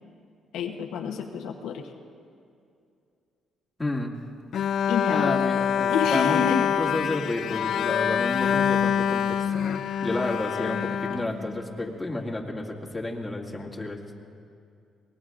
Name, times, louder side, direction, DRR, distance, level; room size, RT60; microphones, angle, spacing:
voice 1, 0.5-1.9 4.9-5.3 5.9-6.7, left 6 dB, 85° left, 3 dB, 0.9 m, -28 dB
voice 2, 3.8-4.1 5.1-6.4 6.8-9.6 10.0-14.1, left 2 dB, 10° left, -2 dB, 2.0 m, -31 dB
Bowed string instrument, 4.5-11.9, left 8 dB, 65° left, 0.4 m, -25 dB
24.0 x 19.5 x 2.5 m, 2.4 s
cardioid pair, 90°, 0 cm